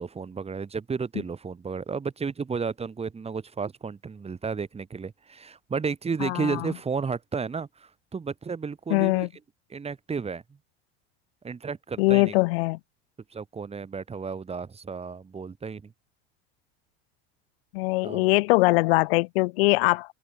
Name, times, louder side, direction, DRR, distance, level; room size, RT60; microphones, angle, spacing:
voice 1, 0.0-9.3 9.7-10.4 11.4-12.3 13.3-15.9 18.0-18.3, right 5 dB, 20° right, 3.4 m, -33 dB
voice 2, 6.2-6.7 8.9-9.3 12.0-12.8 17.7-20.1, left 24 dB, 75° left, 1.4 m, -22 dB
supercardioid pair, 110°, 30 cm